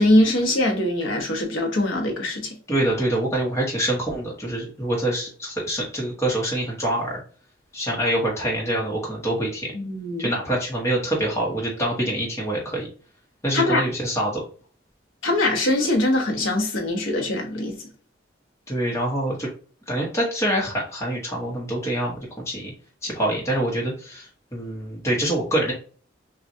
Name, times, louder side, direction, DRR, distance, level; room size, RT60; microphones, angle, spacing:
voice 1, 0.0-2.5 9.7-10.3 13.5-13.8 15.2-17.8, left 1 dB, 85° left, 1.1 m, -22 dB
voice 2, 2.7-7.2 7.7-9.7 10.2-12.9 13.4-14.4 18.7-19.5 19.9-22.7 23.0-25.7, right 1 dB, 15° left, 1.1 m, -25 dB
5.8 x 2.4 x 2.7 m
head